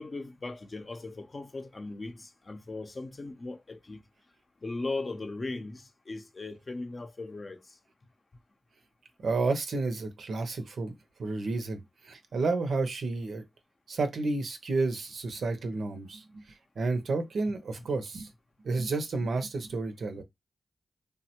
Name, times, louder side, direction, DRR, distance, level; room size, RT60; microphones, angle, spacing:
voice 1, 0.0-4.0 4.6-7.8, left 3 dB, 45° left, 0.5 m, -38 dB
voice 2, 9.2-10.9 11.2-11.8 12.1-13.4 13.9-16.4 16.8-18.3 18.6-20.2, right 3 dB, 80° right, 0.6 m, -31 dB
3.4 x 2.1 x 2.8 m
cardioid pair, 65°, 0 cm